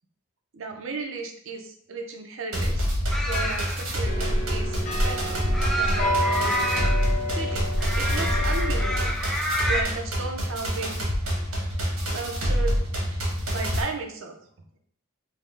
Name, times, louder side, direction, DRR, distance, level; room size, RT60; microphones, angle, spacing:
voice 1, 0.5-2.9 3.2-5.4 5.7-6.7 7.1-7.7 7.9-9.1 9.7-11.0 12.1-12.8 13.5-14.4, right 3 dB, 65° right, 3 dB, 0.5 m, -35 dB
sound 1, 2.5-13.8, equal, 85° right, 1.0 m, -27 dB
sound 2, 3.1-9.8, equal, ahead, 0.3 m, -29 dB
sound 3, 4.0-9.1, equal, 35° left, 0.6 m, -28 dB
3.4 x 2.1 x 3.3 m, 0.62 s
head